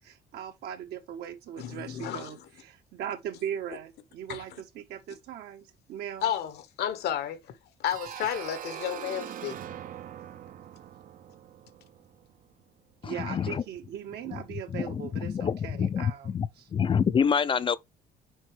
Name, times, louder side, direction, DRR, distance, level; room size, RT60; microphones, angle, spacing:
voice 1, 0.0-2.4 2.6-6.3 13.0-16.3 16.6-16.7, right 9 dB, 75° right, 1.4 m, -39 dB
voice 2, 1.6-2.3 4.3-4.4 6.2-9.6, left 10 dB, 75° left, 1.1 m, -32 dB
sound 1, 7.9-12.5, right 10 dB, 55° right, 0.6 m, -42 dB
voice 3, 13.0-13.6 14.3-14.4 14.7-17.8, left 7 dB, 30° left, 0.4 m, -27 dB
6.3 x 4.7 x 3.3 m
cardioid pair, 110°, 17 cm